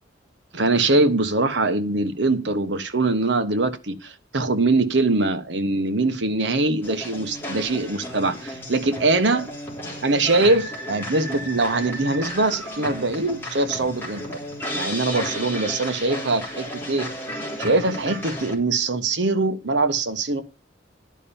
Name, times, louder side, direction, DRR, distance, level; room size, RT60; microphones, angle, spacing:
voice 1, 0.5-9.5 10.0-14.2 14.7-17.1 17.6-20.4, right 2 dB, 65° right, 10 dB, 1.2 m, -22 dB
sound 1, 6.8-18.5, equal, 10° left, 3.2 m, -33 dB
11.0 x 5.6 x 7.1 m, 0.31 s
head